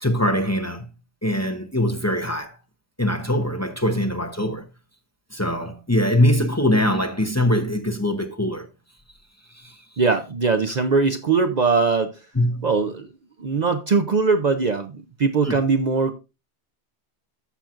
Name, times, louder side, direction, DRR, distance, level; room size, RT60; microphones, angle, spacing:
voice 1, 0.0-0.9 1.2-2.5 3.0-4.6 5.3-8.6 12.4-12.7 15.4-15.6, left 1 dB, 15° left, 0.8 m, -22 dB
voice 2, 10.0-12.1 12.6-13.1 13.4-16.1, right 4 dB, 50° right, 0.7 m, -21 dB
14.0 x 5.9 x 2.5 m
omnidirectional pair, 1.1 m